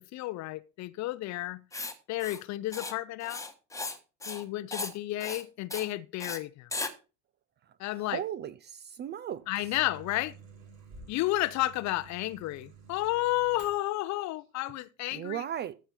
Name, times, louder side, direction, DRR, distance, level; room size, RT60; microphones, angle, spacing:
voice 1, 0.0-1.6 2.1-3.4 4.3-6.7 7.8-8.2 9.5-10.3 11.1-15.4, left 17 dB, 40° left, 0.6 m, -32 dB
Writing, 1.7-1.9 2.2-2.4 2.7-2.9 3.2-4.0 4.2-4.4 4.7-4.9 5.2-5.4 5.7-5.9 6.2-6.4 6.7-6.9, left 3 dB, 5° left, 1.3 m, -36 dB
voice 2, 7.9-9.4 15.1-15.8, right 10 dB, 25° right, 0.4 m, -36 dB
Microwave oven, 9.3-14.1, right 5 dB, 55° right, 3.6 m, -52 dB
14.0 x 5.6 x 4.2 m
hypercardioid pair, 75°, 44 cm